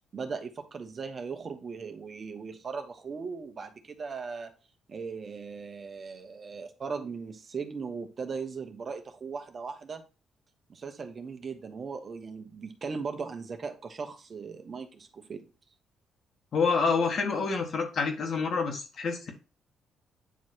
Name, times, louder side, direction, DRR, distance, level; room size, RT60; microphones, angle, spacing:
voice 1, 0.1-4.5 4.9-10.0 10.7-15.4, right 5 dB, 40° right, 6 dB, 1.1 m, -38 dB
voice 2, 16.5-19.3, left 4 dB, 55° left, 3 dB, 1.9 m, -27 dB
9.1 x 3.2 x 4.4 m, 0.32 s
cardioid pair, 90°, 0 cm